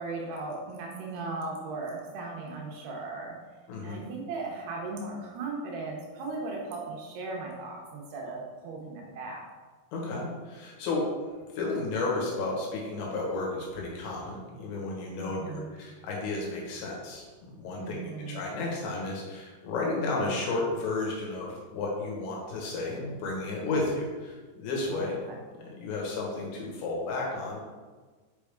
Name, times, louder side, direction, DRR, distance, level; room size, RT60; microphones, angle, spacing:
voice 1, 0.0-3.4 3.8-9.5 15.2-15.7 17.8-18.4 24.9-25.4, right 3 dB, 75° right, -1 dB, 2.8 m, -37 dB
voice 2, 3.7-4.0 9.9-11.1 11.5-18.0 18.3-25.2 25.6-27.6, left 3 dB, 80° left, -2 dB, 3.6 m, -32 dB
6.7 x 5.6 x 3.6 m, 1.4 s
omnidirectional pair, 5.1 m